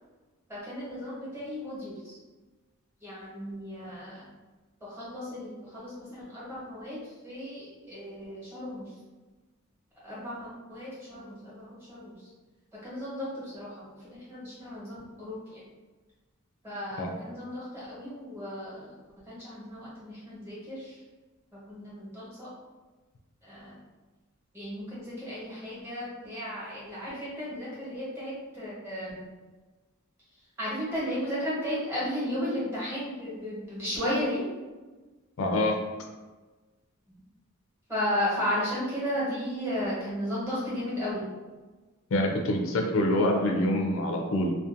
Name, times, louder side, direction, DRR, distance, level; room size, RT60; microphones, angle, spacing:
voice 1, 0.5-2.2 3.0-4.3 4.8-8.9 10.0-12.1 12.8-15.6 16.6-18.9 19.3-21.0 21.7-22.5 23.4-23.8 24.5-29.2 30.6-34.4 37.9-41.2, equal, 10° right, -9 dB, 1.0 m, -34 dB
voice 2, 35.4-35.7 42.1-44.5, left 1 dB, 70° left, 2 dB, 0.4 m, -25 dB
2.6 x 2.1 x 2.5 m, 1.2 s
head